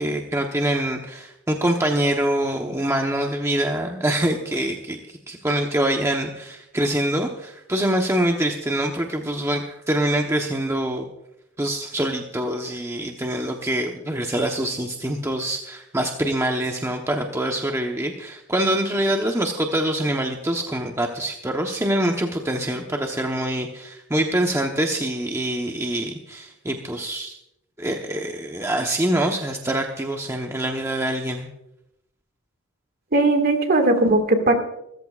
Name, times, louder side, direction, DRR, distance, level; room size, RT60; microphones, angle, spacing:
voice 1, 0.0-11.1 11.6-27.4 27.8-31.5, right 1 dB, 15° right, 2 dB, 1.0 m, -25 dB
voice 2, 33.1-34.5, right 2 dB, 45° right, 5 dB, 2.0 m, -18 dB
25.0 x 14.5 x 2.5 m, 0.79 s
head